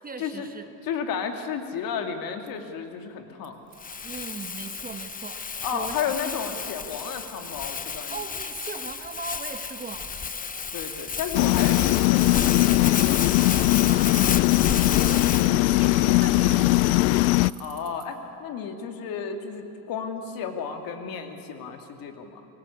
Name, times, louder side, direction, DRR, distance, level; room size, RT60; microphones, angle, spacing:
voice 1, 0.0-0.7 4.0-6.1 8.1-10.1 13.6-16.9, right 4 dB, 20° right, 8 dB, 1.4 m, -39 dB
voice 2, 0.8-3.6 5.6-8.1 10.7-13.2 17.6-22.5, left 6 dB, 55° left, 5 dB, 2.7 m, -33 dB
Bicycle, 2.5-2.6 3.4-3.5 3.7-5.9 6.2-18.1, right 13 dB, 65° right, 4.2 m, -45 dB
Crumpling crinkling, 3.8-15.5, left 6 dB, 20° left, 0.9 m, -32 dB
sound 1, 11.3-17.5, left 20 dB, 75° left, 0.6 m, -20 dB
25.0 x 18.5 x 8.7 m, 2.8 s
supercardioid pair, 100°, 41 cm